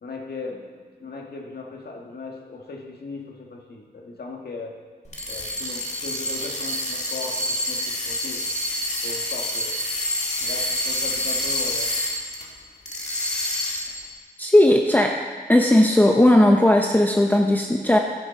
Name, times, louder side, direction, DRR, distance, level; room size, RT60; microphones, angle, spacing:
voice 1, 0.0-4.8 5.3-8.5 9.0-9.8 10.4-12.0, left 4 dB, 70° left, 0 dB, 1.7 m, -37 dB
sound 1, 5.1-12.5 12.9-14.0, left 1 dB, 40° left, 1.8 m, -27 dB
voice 2, 14.4-15.2 15.5-18.0, left 1 dB, 10° left, 1 dB, 0.6 m, -16 dB
14.5 x 6.6 x 5.2 m, 1.5 s
wide cardioid pair, 130°, 17 cm